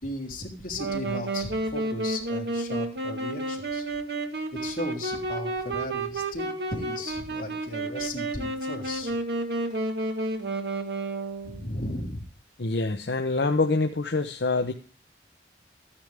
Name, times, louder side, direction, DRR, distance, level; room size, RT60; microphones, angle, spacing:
voice 1, 0.0-3.8 4.6-9.1 11.4-12.3, left 1 dB, 50° left, -1 dB, 3.3 m, -36 dB
Wind instrument woodwind instrument, 0.8-11.7, right 2 dB, 65° right, 1.5 m, -31 dB
voice 2, 12.6-14.7, left 3 dB, 70° left, 6 dB, 0.8 m, -25 dB
13.5 x 9.8 x 3.5 m, 0.37 s
head